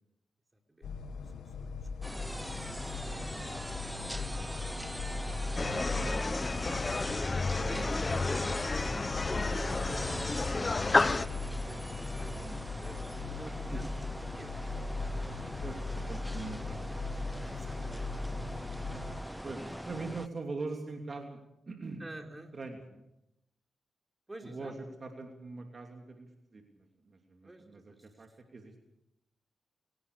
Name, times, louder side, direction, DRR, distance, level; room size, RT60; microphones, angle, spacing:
voice 1, 0.5-2.8 3.1-3.4 3.7-5.6 5.9-7.1 7.7-10.7 10.9-13.9 14.3-14.5 17.5-18.1 22.0-22.5 24.3-24.7 27.4-28.4, right 1 dB, 25° right, 3 dB, 4.6 m, -52 dB
sound 1, 0.8-19.2, left 3 dB, 80° left, 1.3 m, -39 dB
sound 2, 2.0-20.3, equal, 5° right, 0.8 m, -42 dB
sound 3, 5.6-11.3, left 3 dB, 35° left, 0.9 m, -31 dB
voice 2, 12.2-12.6 13.7-13.8 15.6-17.0 19.4-22.0 22.5-23.0 24.4-28.7, right 3 dB, 45° right, 3 dB, 3.0 m, -43 dB
23.5 x 18.5 x 6.7 m, 0.83 s
cardioid pair, 55°, 0 cm